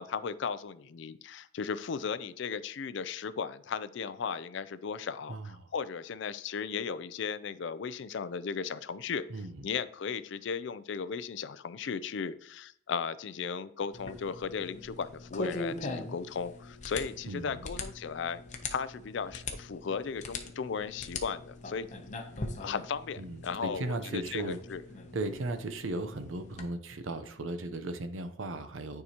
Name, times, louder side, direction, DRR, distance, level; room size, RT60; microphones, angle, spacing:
voice 1, 0.0-9.2 9.6-18.4 18.7-21.9 22.3-24.8, left 6 dB, 60° left, 15 dB, 0.4 m, -36 dB
voice 2, 5.3-5.7 9.3-9.7 17.3-17.6 23.2-24.6 25.1-29.0, right 2 dB, 75° right, 9 dB, 0.7 m, -36 dB
sound 1, 13.9-26.7, left 3 dB, 35° left, 0.7 m, -42 dB
9.5 x 4.8 x 2.9 m, 0.62 s
head